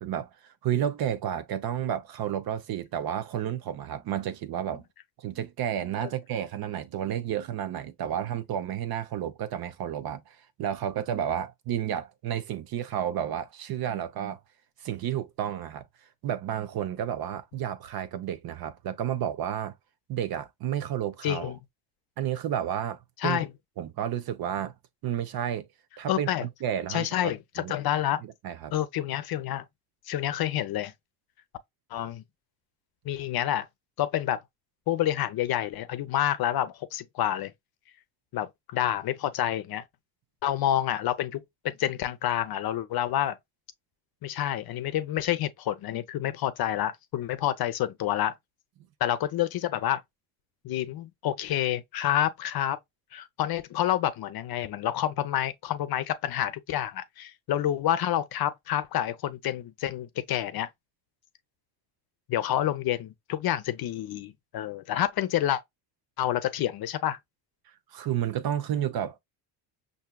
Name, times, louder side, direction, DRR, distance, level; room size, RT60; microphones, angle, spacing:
voice 1, 0.0-4.8 5.2-14.4 14.8-15.9 16.2-19.7 20.1-21.5 22.2-23.4 23.8-24.7 25.0-25.7 26.0-27.8 28.2-28.7 67.9-69.2, right 10 dB, 50° right, 0.7 m, -31 dB
voice 2, 21.2-21.6 23.2-23.5 26.1-26.5 26.9-28.2 28.7-29.6 30.1-30.9 31.9-32.2 33.0-33.7 34.0-34.4 34.9-37.5 38.3-39.8 40.4-43.4 44.2-48.3 49.0-50.0 50.6-52.8 53.1-60.7 62.3-65.6 66.2-67.2, left 12 dB, 50° left, 0.7 m, -28 dB
5.6 x 2.7 x 2.2 m
supercardioid pair, 95°, 47 cm